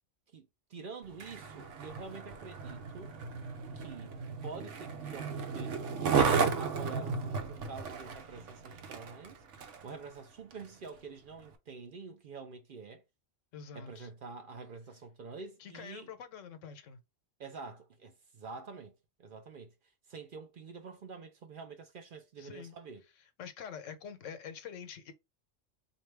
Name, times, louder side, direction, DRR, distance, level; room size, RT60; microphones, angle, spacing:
voice 1, 0.3-3.2 3.7-4.2 4.4-13.0 13.7-16.1 17.4-18.9 19.2-19.7 20.1-23.0, right 4 dB, 55° right, 0.7 m, -47 dB
Skateboard, 1.0-9.9 10.5-10.6, right 5 dB, 75° right, 1.0 m, -34 dB
voice 2, 13.5-14.1 15.6-17.0 22.4-22.7 23.4-25.1, left 7 dB, 85° left, 1.1 m, -46 dB
4.1 x 2.6 x 3.3 m
omnidirectional pair, 1.3 m